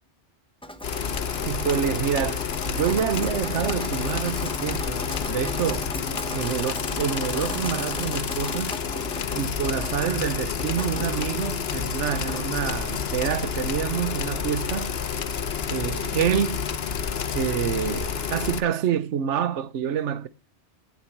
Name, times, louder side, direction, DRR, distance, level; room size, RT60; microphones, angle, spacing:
Drip, 0.6-16.1, equal, 5° left, 1.2 m, -39 dB
sound 1, 0.8-18.6, left 7 dB, 65° left, 1.1 m, -29 dB
voice 1, 1.5-5.9 6.3-8.8 9.3-14.9 15.7-16.6 17.3-20.3, right 9 dB, 85° right, 1.1 m, -27 dB
17.0 x 7.1 x 4.5 m
omnidirectional pair, 1.2 m